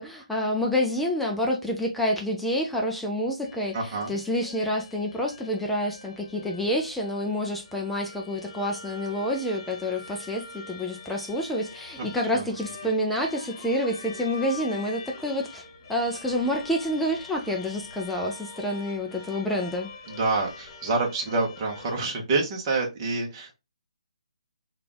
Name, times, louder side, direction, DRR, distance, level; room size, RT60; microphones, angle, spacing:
voice 1, 0.0-15.6 15.9-19.9, equal, 5° left, 0.4 m, -28 dB
sound 1, 3.4-21.9, left 4 dB, 35° left, 0.7 m, -44 dB
voice 2, 3.7-4.1 12.0-12.1 12.3-12.5 20.1-23.5, right 3 dB, 30° right, 1.0 m, -27 dB
3.2 x 2.4 x 3.8 m
hypercardioid pair, 160°, 4 cm